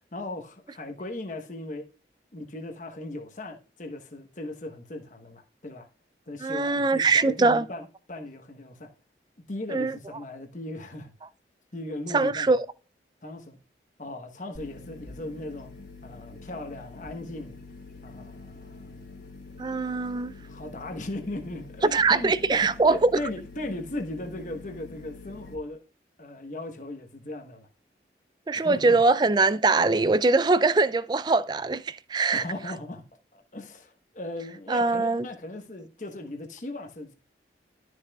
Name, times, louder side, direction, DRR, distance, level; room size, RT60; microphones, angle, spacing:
voice 1, 0.1-1.9 2.3-5.9 6.3-8.9 9.4-11.1 11.7-12.5 13.2-13.6 14.0-15.7 16.0-17.6 18.0-19.1 20.5-25.8 26.2-27.7 28.5-29.0 32.3-33.0 33.5-37.1, left 1 dB, 45° left, 1.1 m, -37 dB
voice 2, 6.4-7.6 9.7-10.0 12.1-12.7 19.6-20.3 21.9-23.1 28.5-32.4 34.7-35.3, right 3 dB, 25° right, 0.3 m, -22 dB
sound 1, 14.5-25.6, left 3 dB, 90° left, 3.1 m, -46 dB
12.5 x 6.2 x 2.3 m
head